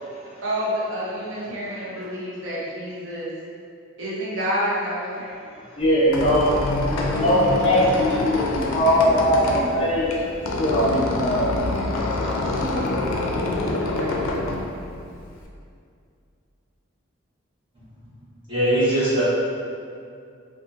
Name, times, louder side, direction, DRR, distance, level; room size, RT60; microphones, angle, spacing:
voice 1, 0.4-3.3 4.0-5.3 12.7-12.8 14.0-14.1, equal, 65° right, -7 dB, 0.6 m, -28 dB
Squeak, 5.8-15.4, left 2 dB, 85° left, 0.4 m, -27 dB
voice 2, 5.8-10.1 10.6-11.5 12.1-13.1 13.6-14.2, equal, 30° left, -8 dB, 0.5 m, -21 dB
voice 3, 18.5-19.2, right 1 dB, 25° right, -13 dB, 1.0 m, -20 dB
2.6 x 2.4 x 2.5 m, 2.4 s
head